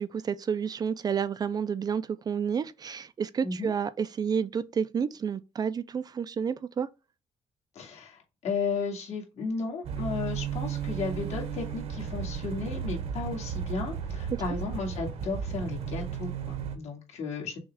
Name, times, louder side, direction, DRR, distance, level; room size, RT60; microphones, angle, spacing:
voice 1, 0.0-6.9, right 7 dB, 35° right, 0.4 m, -30 dB
voice 2, 7.7-17.6, left 4 dB, 75° left, 2.1 m, -34 dB
sound 1, 9.8-16.8, right 7 dB, 65° right, 1.0 m, -34 dB
6.2 x 2.4 x 3.4 m
cardioid pair, 125°, 12 cm